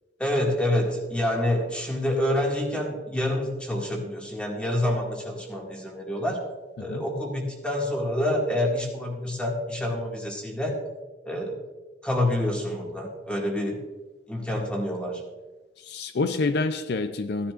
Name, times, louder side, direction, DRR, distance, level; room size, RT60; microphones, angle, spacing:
voice 1, 0.2-6.4 6.8-10.7 11.2-11.6 12.0-13.8 14.3-15.2, left 1 dB, 5° left, 2.0 m, -27 dB
voice 2, 15.8-17.5, left 3 dB, 60° left, 0.4 m, -27 dB
15.5 x 10.0 x 2.5 m
head